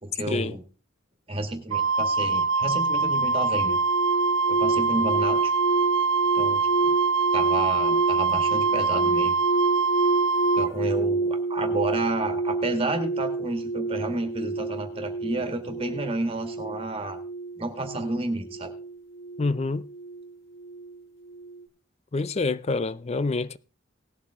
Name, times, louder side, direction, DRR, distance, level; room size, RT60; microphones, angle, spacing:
voice 1, 0.0-0.6 1.3-3.8 4.5-5.5 6.3-6.9 7.3-9.3 10.5-17.2 17.6-18.7, right 2 dB, 30° right, 1.9 m, -31 dB
Wind instrument woodwind instrument, 1.7-10.7, right 4 dB, 75° right, 0.8 m, -24 dB
sound 1, 3.7-21.0 21.2-21.6, right 3 dB, 65° left, 1.8 m, -29 dB
voice 2, 19.4-19.9 22.1-23.6, left 3 dB, 30° left, 0.5 m, -27 dB
18.5 x 7.5 x 3.6 m
head